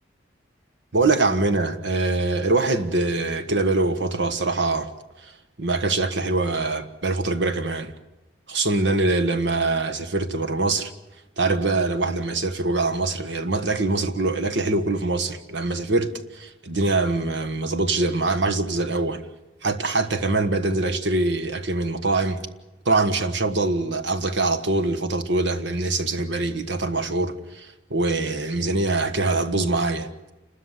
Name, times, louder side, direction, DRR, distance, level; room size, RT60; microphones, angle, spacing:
voice 1, 0.9-4.9 5.2-7.9 8.5-10.9 11.4-19.2 19.6-22.4 22.8-30.1, right 2 dB, 65° right, 1.5 m, -23 dB
28.5 x 13.5 x 9.8 m
head